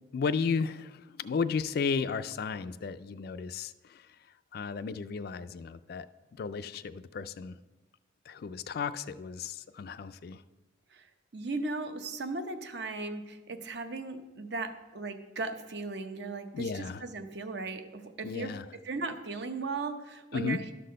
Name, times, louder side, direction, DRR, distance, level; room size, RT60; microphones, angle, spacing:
voice 1, 0.1-4.2 4.5-6.1 6.3-7.6 8.3-10.4 16.5-17.0 18.2-18.7 20.3-20.6, left 5 dB, 50° left, 13 dB, 0.3 m, -34 dB
voice 2, 10.9-18.5 18.8-20.7, right 3 dB, 60° right, 8 dB, 0.8 m, -37 dB
12.0 x 4.1 x 6.4 m, 1.2 s
head